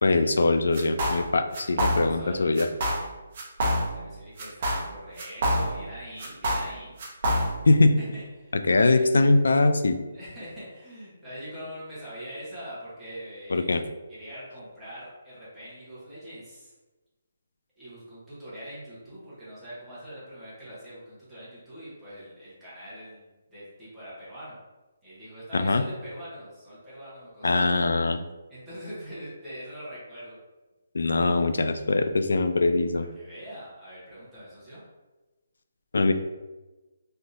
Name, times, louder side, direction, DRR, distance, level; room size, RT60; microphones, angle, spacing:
voice 1, 0.0-2.7 7.7-8.0 8.7-10.0 13.5-13.8 25.5-25.8 27.4-28.2 30.9-33.0 35.9-36.1, left 3 dB, 85° left, 9 dB, 0.3 m, -22 dB
sound 1, 0.7-1.3 1.5-2.3 2.6-3.1 3.3-4.1 4.4-5.9 6.2-7.7, equal, 35° right, 0.8 m, -27 dB
voice 2, 2.2-2.5 3.9-6.9 8.0-9.0 10.1-13.7 14.1-16.7 17.8-24.6 25.0-27.7 28.5-30.4 33.1-34.8, equal, 5° right, -12 dB, 0.9 m, -43 dB
3.4 x 2.7 x 2.5 m, 1.2 s
hypercardioid pair, 175°, 0 cm